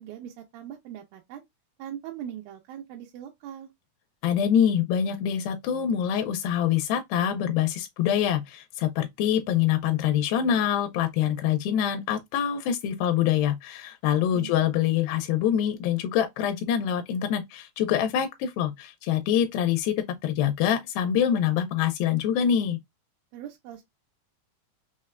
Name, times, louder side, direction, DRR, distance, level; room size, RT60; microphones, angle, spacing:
voice 1, 0.0-1.4 1.8-3.7 14.3-14.6 23.3-23.8, right 10 dB, 90° right, 2.4 m, -40 dB
voice 2, 4.2-22.8, left 9 dB, 90° left, 2.4 m, -25 dB
5.6 x 2.1 x 2.3 m
omnidirectional pair, 4.1 m